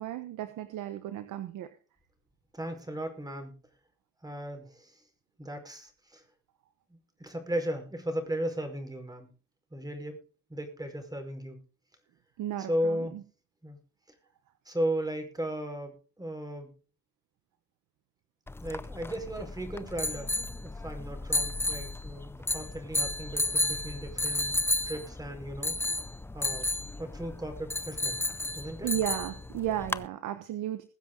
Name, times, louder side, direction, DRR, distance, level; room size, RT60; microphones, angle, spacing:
voice 1, 0.0-1.7 12.4-13.2 28.8-30.9, right 12 dB, 85° right, 10 dB, 1.2 m, -34 dB
voice 2, 2.5-3.6 4.2-5.0 5.4-6.2 7.2-9.3 9.7-10.2 10.5-11.6 12.6-13.2 13.6-13.8 14.6-16.7 18.6-25.8 26.3-26.7 27.0-28.2 28.5-28.9, equal, 15° right, 5 dB, 5.0 m, -36 dB
sound 1, 18.5-30.1, left 2 dB, 10° left, 0.5 m, -33 dB
21.0 x 7.4 x 3.9 m, 0.37 s
cardioid pair, 90°, 30 cm